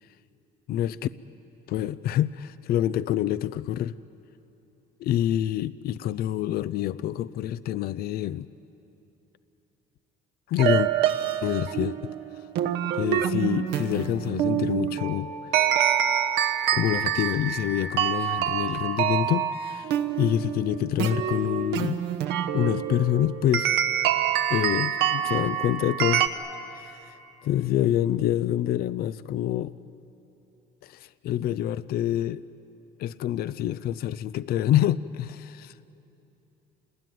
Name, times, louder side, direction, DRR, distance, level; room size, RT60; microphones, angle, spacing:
voice 1, 0.7-1.1 1.7-3.9 5.0-8.5 10.5-10.9 11.4-12.1 12.9-15.3 15.6-15.8 16.7-19.9 20.2-22.0 22.5-23.7 24.5-26.2 26.7-27.1 27.4-29.7 30.8-32.4 33.0-35.7, left 12 dB, 65° left, 16 dB, 0.5 m, -26 dB
sound 1, 10.6-26.3, right 10 dB, 90° right, 1.2 m, -26 dB
28.5 x 20.5 x 9.3 m, 3.0 s
cardioid pair, 110°, 17 cm